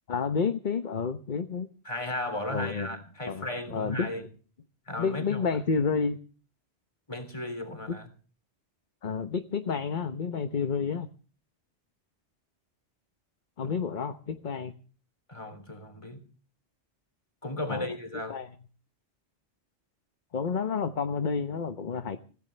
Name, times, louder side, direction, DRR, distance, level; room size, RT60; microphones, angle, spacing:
voice 1, 0.1-1.7 2.5-2.9 3.3-4.1 5.0-6.2 9.0-11.1 13.6-14.7 17.7-17.9 18.3-18.5 20.3-22.3, left 5 dB, 45° left, 1.0 m, -30 dB
voice 2, 1.8-4.2 4.9-5.6 7.1-8.1 13.6-13.8 15.3-16.2 17.4-18.4, left 1 dB, 25° left, 3.5 m, -35 dB
25.5 x 16.5 x 3.3 m
omnidirectional pair, 1.2 m